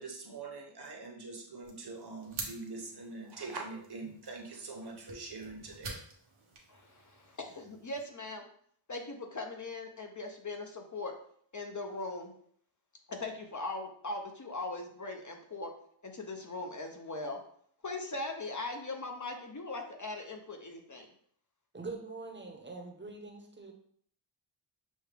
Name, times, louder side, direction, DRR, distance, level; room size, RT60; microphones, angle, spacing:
voice 1, 0.0-6.0, right 3 dB, 55° right, 1 dB, 0.9 m, -43 dB
sound 1, 1.6-8.0, right 3 dB, 90° right, 1.0 m, -48 dB
voice 2, 6.7-8.4 8.9-11.1 11.5-12.3 13.1-15.7 16.0-17.4 17.8-21.1, left 2 dB, 40° left, 3 dB, 0.6 m, -40 dB
voice 3, 21.7-23.7, right 3 dB, 25° right, 2 dB, 0.7 m, -43 dB
6.3 x 2.3 x 3.3 m, 0.62 s
wide cardioid pair, 95°, 48 cm